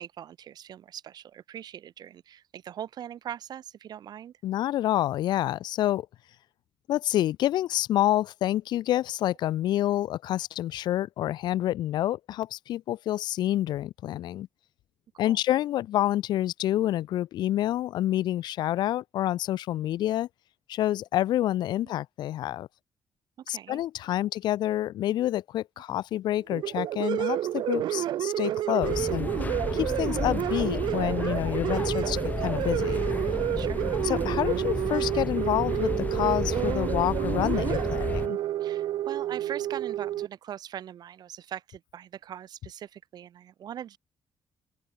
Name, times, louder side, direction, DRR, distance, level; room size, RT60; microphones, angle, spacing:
voice 1, 0.0-4.3 15.2-15.4 21.8-21.9 23.4-23.8 33.6-33.8 38.6-44.0, right 10 dB, 65° right, 2.4 m, -41 dB
voice 2, 4.4-6.1 6.9-14.5 15.2-20.3 20.7-22.7 23.5-29.3 29.7-33.0 34.0-38.4, left 13 dB, 80° left, 0.4 m, -28 dB
sound 1, 26.5-40.3, right 13 dB, 85° right, 0.8 m, -29 dB
sound 2, 28.8-38.3, left 4 dB, 20° left, 0.5 m, -32 dB
open air
cardioid pair, 130°, 7 cm